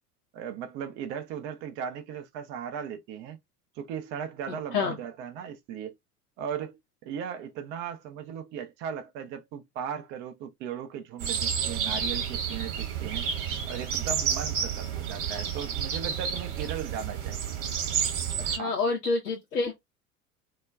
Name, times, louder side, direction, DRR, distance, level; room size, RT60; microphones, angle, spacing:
voice 1, 0.3-3.4 3.8-5.9 6.4-13.3 13.7-17.5 18.6-18.8, right 8 dB, 25° right, 0.3 m, -37 dB
voice 2, 4.5-5.0 18.4-19.7, left 4 dB, 80° left, 0.7 m, -28 dB
sound 1, 11.2-18.6, right 7 dB, 50° right, 1.0 m, -30 dB
2.3 x 2.1 x 3.4 m
figure-of-eight pair, 75°, 46 cm